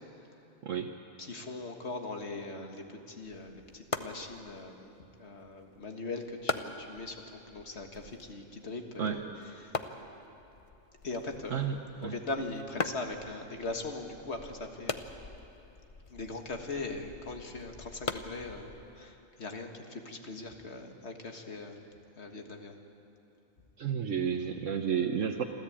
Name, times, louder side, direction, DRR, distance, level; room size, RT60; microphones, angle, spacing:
voice 1, 1.2-4.9 5.2-9.2 9.6-9.7 11.0-11.7 12.0-15.0 16.1-21.8 22.2-22.7, left 3 dB, 55° left, 4 dB, 1.9 m, -40 dB
sound 1, 3.2-19.1, left 4 dB, 35° left, 0.6 m, -42 dB
voice 2, 23.8-25.4, right 7 dB, 70° right, 4 dB, 1.2 m, -31 dB
27.0 x 14.0 x 8.7 m, 3.0 s
omnidirectional pair, 1.4 m